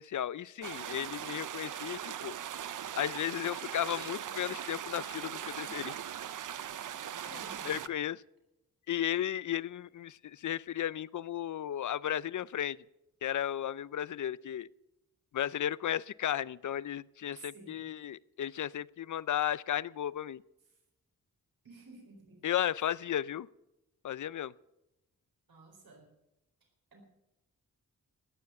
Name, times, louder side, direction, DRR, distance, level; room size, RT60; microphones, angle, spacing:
voice 1, 0.0-2.4 3.0-6.0 7.3-8.2 8.9-12.8 13.2-14.7 15.3-20.4 22.4-23.5 24.0-24.5, left 10 dB, 55° left, 20 dB, 0.5 m, -34 dB
sound 1, 0.6-7.9, right 10 dB, 60° right, 0.6 m, -40 dB
voice 2, 7.1-7.8 17.4-17.9 21.6-22.5 25.5-26.1 26.9-27.0, right 3 dB, 80° right, 1 dB, 4.4 m, -53 dB
18.0 x 7.1 x 7.7 m, 0.92 s
cardioid pair, 65°, 35 cm